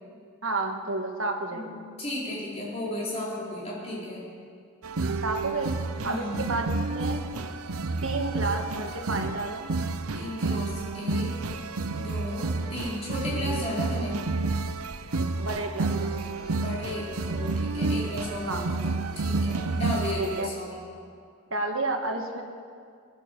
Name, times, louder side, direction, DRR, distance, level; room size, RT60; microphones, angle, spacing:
voice 1, 0.4-1.8 5.2-5.7 6.0-7.2 8.0-9.7 15.4-16.3 18.5-18.6 20.2-20.5 21.5-22.4, right 2 dB, 65° right, 3 dB, 1.7 m, -31 dB
voice 2, 1.5-4.3 6.0-6.4 10.1-11.3 12.0-14.2 16.5-20.8, left 1 dB, 30° left, -6 dB, 4.5 m, -34 dB
sound 1, 4.8-20.4, right 3 dB, 85° right, 0.8 m, -30 dB
19.0 x 11.0 x 6.8 m, 2.2 s
head